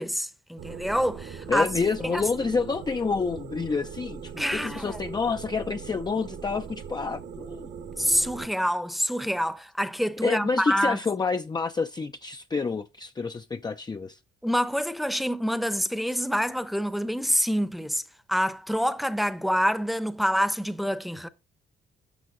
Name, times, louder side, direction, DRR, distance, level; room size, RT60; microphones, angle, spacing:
voice 1, 0.0-1.7 2.1-2.2 4.4-5.1 8.0-11.0 14.4-18.0 18.3-21.3, equal, ahead, 0.8 m, -26 dB
sound 1, 0.6-8.5, right 7 dB, 65° right, 1.4 m, -40 dB
voice 2, 1.5-7.7 10.2-14.2, left 4 dB, 20° left, 0.5 m, -28 dB
11.0 x 6.2 x 3.8 m
cardioid pair, 90°, 20 cm